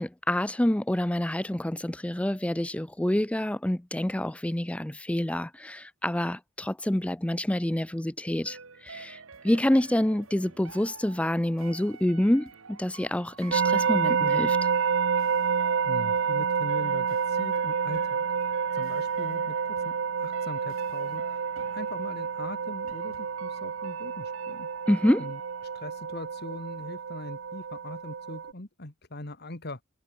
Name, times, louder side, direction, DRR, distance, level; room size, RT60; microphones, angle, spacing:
voice 1, 0.0-8.6 8.8-9.2 9.4-14.6 24.9-25.3, left 1 dB, 5° left, 0.4 m, -27 dB
sound 1, 8.4-27.1 27.3-27.4, right 5 dB, 75° right, 1.5 m, -49 dB
sound 2, 13.5-28.5, right 6 dB, 60° right, 0.5 m, -28 dB
voice 2, 15.8-24.7 25.2-29.8, left 1 dB, 50° left, 2.4 m, -41 dB
head